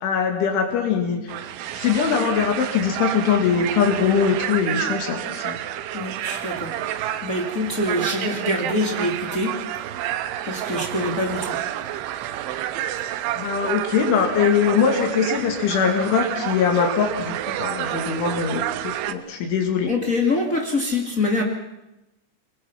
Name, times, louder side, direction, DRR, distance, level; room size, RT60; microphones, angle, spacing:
voice 1, 0.0-1.2 1.7-5.6 13.4-19.9, left 6 dB, 70° left, 4 dB, 4.7 m, -22 dB
sound 1, 1.3-19.1, right 12 dB, 80° right, 3.3 m, -29 dB
voice 2, 5.9-9.5 10.4-11.6 19.9-21.4, left 2 dB, 45° left, 1 dB, 1.0 m, -25 dB
28.0 x 22.0 x 5.9 m, 0.93 s
omnidirectional pair, 5.8 m